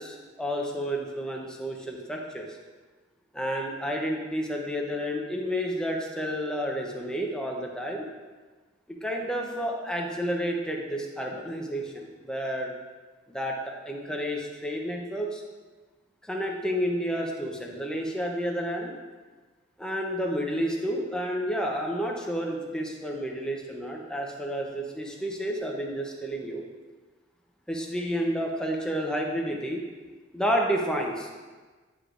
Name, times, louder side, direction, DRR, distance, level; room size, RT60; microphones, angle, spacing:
voice 1, 0.0-2.5 3.3-8.0 8.9-12.7 13.3-15.4 16.2-18.9 19.8-26.6 27.7-29.8 30.3-31.3, equal, 5° left, 0 dB, 0.7 m, -30 dB
9.7 x 4.9 x 2.5 m, 1.4 s
head